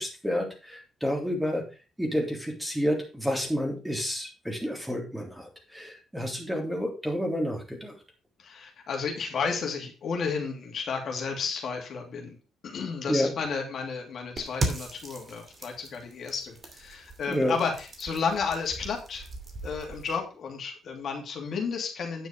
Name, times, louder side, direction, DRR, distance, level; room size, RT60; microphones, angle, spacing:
voice 1, 0.0-1.6 2.0-7.9 13.1-13.3 17.3-17.5, equal, 5° right, 1 dB, 3.4 m, -29 dB
voice 2, 8.4-12.4 12.6-19.3 19.6-22.3, left 5 dB, 60° left, 2 dB, 2.6 m, -32 dB
sound 1, 14.4-20.2, right 2 dB, 35° right, 2.6 m, -37 dB
9.4 x 6.2 x 5.1 m, 0.33 s
cardioid pair, 90°, 0 cm